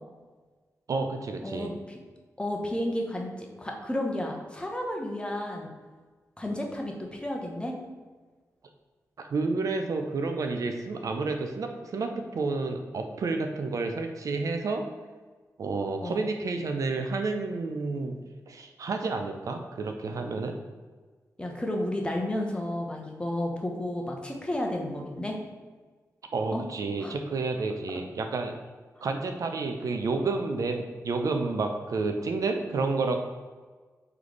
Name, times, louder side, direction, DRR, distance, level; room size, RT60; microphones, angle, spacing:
voice 1, 0.9-1.7 9.2-14.8 15.6-18.2 18.5-20.6 26.3-28.5 29.0-33.2, right 3 dB, 65° right, 5 dB, 0.4 m, -30 dB
voice 2, 1.4-2.0 2.4-5.7 6.4-7.7 16.0-16.3 21.4-25.4 26.5-26.6 27.0-27.1, left 1 dB, 15° left, 1 dB, 0.8 m, -32 dB
3.2 x 3.1 x 3.9 m, 1.4 s
cardioid pair, 65°, 6 cm